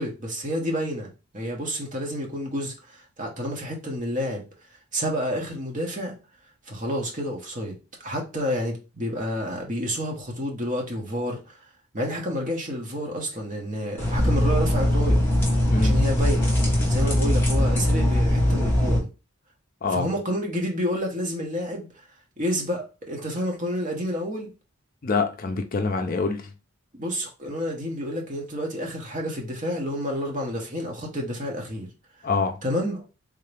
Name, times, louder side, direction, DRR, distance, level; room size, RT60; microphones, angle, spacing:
voice 1, 0.0-4.5 4.9-6.1 6.7-7.7 8.0-11.6 11.9-15.2 15.8-16.4 16.9-19.1 19.9-21.9 22.4-24.5 26.9-31.9 32.6-33.0, equal, 35° right, 1.0 m, -29 dB
sound 1, 14.0-19.0, left 1 dB, 10° left, 1.1 m, -21 dB
voice 2, 25.0-26.5 32.2-32.6, left 4 dB, 40° left, 0.4 m, -25 dB
3.7 x 2.8 x 3.3 m
head